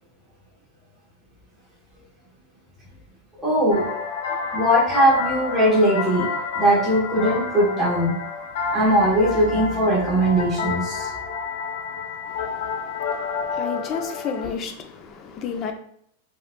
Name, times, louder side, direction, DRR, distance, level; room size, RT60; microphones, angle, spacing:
voice 1, 3.4-3.9 4.5-6.3 6.6-8.1 8.7-11.1, right 1 dB, 5° right, 1.0 m, -20 dB
sound 1, 3.7-14.5, left 5 dB, 70° left, 0.7 m, -30 dB
voice 2, 12.3-15.7, left 6 dB, 30° left, 0.5 m, -32 dB
4.6 x 2.4 x 2.2 m
supercardioid pair, 150°, 0 cm